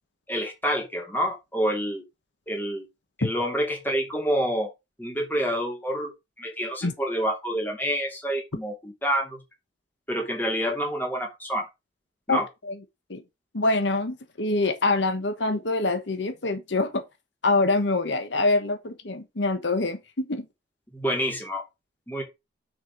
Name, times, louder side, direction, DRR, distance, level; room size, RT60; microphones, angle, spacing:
voice 1, 0.3-2.0 2.5-2.9 3.2-4.7 5.0-6.1 6.4-9.4 10.1-11.7 12.3-12.4 20.9-21.6 22.1-22.2, equal, 10° left, 2.7 m, -27 dB
voice 2, 12.3-12.8 13.1-13.2 13.5-17.0 17.4-20.5, left 2 dB, 75° left, 1.2 m, -25 dB
6.4 x 4.9 x 5.2 m
head